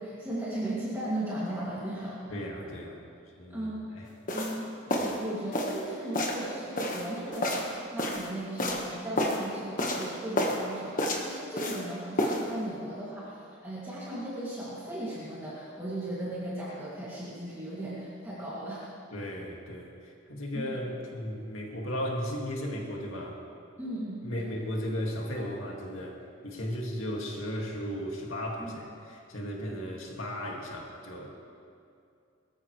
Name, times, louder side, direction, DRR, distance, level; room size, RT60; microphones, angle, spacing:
voice 1, 0.0-2.2 3.5-18.9 20.5-20.8 23.8-24.5 28.6-28.7, right 1 dB, 10° right, -9 dB, 2.5 m, -37 dB
voice 2, 2.3-3.0 3.4-3.7 3.9-4.0 19.1-23.4 24.2-31.3, equal, 75° left, -1 dB, 2.1 m, -35 dB
Footsteps In Squeaky Shoes, 4.3-4.6 4.9-5.2 5.5-5.8 6.1-6.4 6.8-8.3 8.6-8.9 9.2-9.5 9.8-10.1 10.4-10.6 11.0-11.8 12.2-12.4, left 1 dB, 40° left, 1.4 m, -30 dB
22.0 x 13.5 x 3.3 m, 2.4 s
head